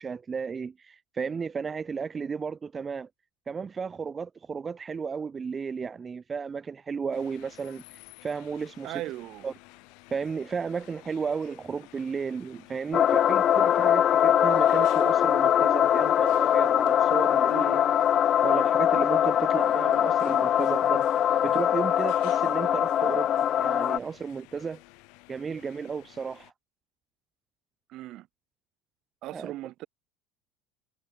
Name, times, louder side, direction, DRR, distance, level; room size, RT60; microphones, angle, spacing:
voice 1, 0.0-3.1 3.5-7.8 8.2-9.0 9.4-9.5 10.1-17.8 18.4-21.1 21.4-24.8 25.3-26.5 29.3-29.5, right 5 dB, 15° right, 1.4 m, -33 dB
sound 1, 7.1-26.5, left 31 dB, 60° left, 7.3 m, -53 dB
voice 2, 8.8-9.5 17.5-17.7 27.9-28.3 29.2-29.9, right 16 dB, 40° right, 2.1 m, -37 dB
sound 2, 12.9-24.0, left 10 dB, 30° left, 0.7 m, -22 dB
cardioid pair, 175°, 0 cm